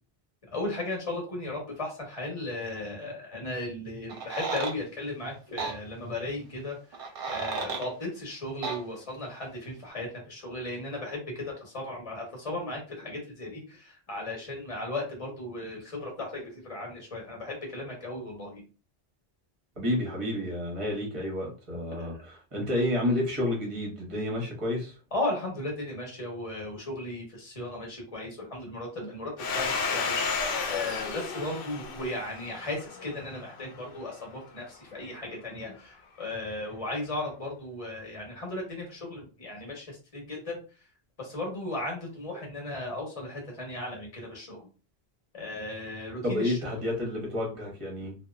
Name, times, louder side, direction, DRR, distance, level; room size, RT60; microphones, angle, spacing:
voice 1, 0.5-6.8 7.3-18.6 22.0-22.1 25.1-40.6 41.2-44.7 45.3-46.8, left 2 dB, 35° left, 1.1 m, -36 dB
sound 1, 4.1-4.8 5.6-5.8 6.9-7.9 8.6-8.8, right 4 dB, 65° right, 0.8 m, -33 dB
voice 2, 19.8-24.9 46.2-48.1, left 1 dB, 35° right, 0.9 m, -30 dB
Domestic sounds home sounds, 29.4-33.8, left 5 dB, 65° left, 0.7 m, -32 dB
2.8 x 2.1 x 2.4 m
omnidirectional pair, 1.1 m